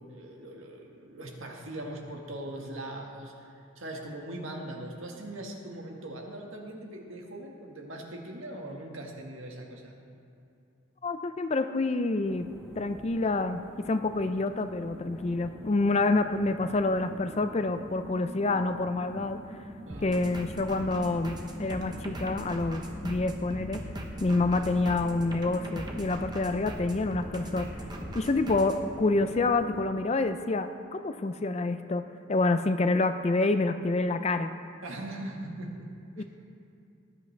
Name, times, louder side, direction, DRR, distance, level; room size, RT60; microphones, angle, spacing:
voice 1, 0.1-9.9 19.9-20.2 34.8-35.9 36.2-36.3, right 1 dB, 70° right, 0 dB, 1.7 m, -40 dB
voice 2, 11.0-12.5 12.8-19.4 20.0-23.8 24.2-27.7 28.1-32.0 32.3-34.5 36.2-36.3, left 2 dB, 30° left, 9 dB, 0.4 m, -27 dB
sound 1, 12.2-29.8, equal, 5° left, 1.4 m, -45 dB
sound 2, 19.9-28.8, equal, 20° right, 0.9 m, -40 dB
19.0 x 10.0 x 3.3 m, 2.6 s
head